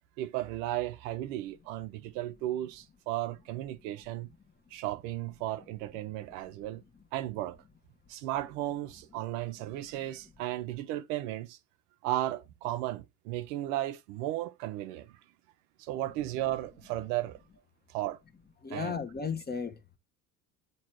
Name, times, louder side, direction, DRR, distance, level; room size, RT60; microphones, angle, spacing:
voice 1, 0.2-4.3 4.7-6.8 7.1-7.6 8.1-11.6 12.0-15.2 15.8-17.4 17.9-18.2 18.7-19.0, right 14 dB, 70° right, 0.8 m, -35 dB
voice 2, 18.6-20.0, left 6 dB, 20° left, 1.1 m, -35 dB
7.3 x 3.1 x 4.5 m
hypercardioid pair, 85°, 49 cm